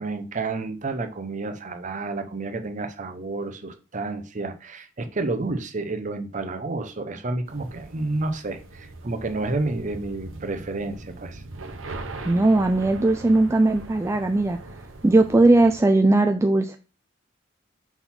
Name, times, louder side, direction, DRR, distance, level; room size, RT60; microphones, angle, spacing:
voice 1, 0.0-11.4, right 3 dB, 40° right, 0.7 m, -30 dB
sound 1, 7.5-15.8, right 2 dB, 90° right, 0.9 m, -40 dB
voice 2, 12.3-14.6 15.0-16.8, right 2 dB, 15° right, 0.3 m, -18 dB
5.8 x 3.9 x 4.2 m
head